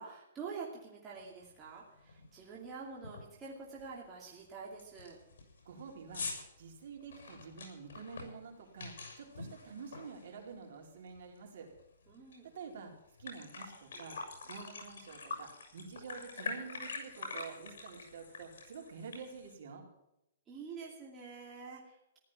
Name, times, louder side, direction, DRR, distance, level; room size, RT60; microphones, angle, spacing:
voice 1, 0.0-5.2 12.1-12.5 20.5-22.2, right 5 dB, 15° right, -4 dB, 2.5 m, -47 dB
sound 1, 1.4-1.5 2.0-2.3 2.5-2.6 3.0-3.4 3.8-3.9 4.4-4.5 4.8-10.7 11.1-12.4 12.7-12.8 13.1-19.5, left 4 dB, 75° left, 6.6 m, -45 dB
voice 2, 5.6-6.3 6.6-11.7 12.4-12.9 13.2-14.2 14.4-19.9, right 5 dB, 55° right, 1 dB, 4.6 m, -48 dB
15.0 x 12.0 x 5.9 m, 0.84 s
hypercardioid pair, 175°, 0 cm